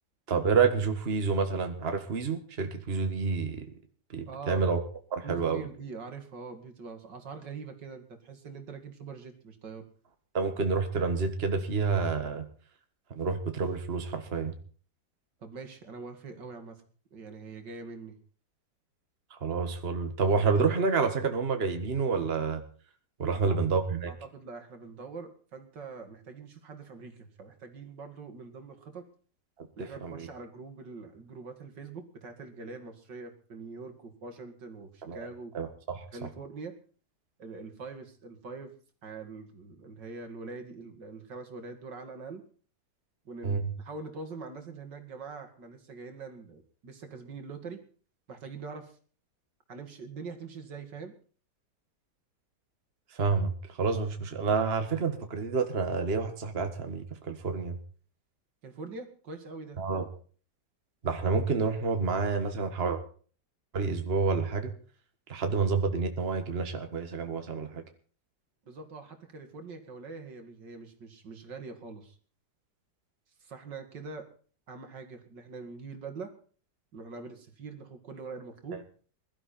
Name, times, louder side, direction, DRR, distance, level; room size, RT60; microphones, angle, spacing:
voice 1, 0.3-3.7 4.1-4.8 5.1-5.7 10.3-12.5 13.2-14.5 19.3-22.6 23.2-24.1 29.8-30.3 35.1-35.3 35.5-36.0 43.4-43.6 53.1-57.8 59.8-60.1 61.0-63.0 63.7-64.7 65.3-67.8, right 4 dB, 35° right, 6 dB, 1.8 m, -29 dB
voice 2, 4.3-4.6 5.2-9.9 15.4-16.8 17.1-18.2 23.3-23.6 24.1-29.0 29.8-35.5 36.1-36.7 37.4-38.7 39.0-42.4 43.2-47.8 48.3-48.9 49.7-51.1 58.6-59.8 68.7-72.2 73.4-74.2 74.7-76.3 76.9-78.8, right 4 dB, 75° right, 6 dB, 2.9 m, -43 dB
21.5 x 12.5 x 4.3 m, 0.42 s
omnidirectional pair, 1.9 m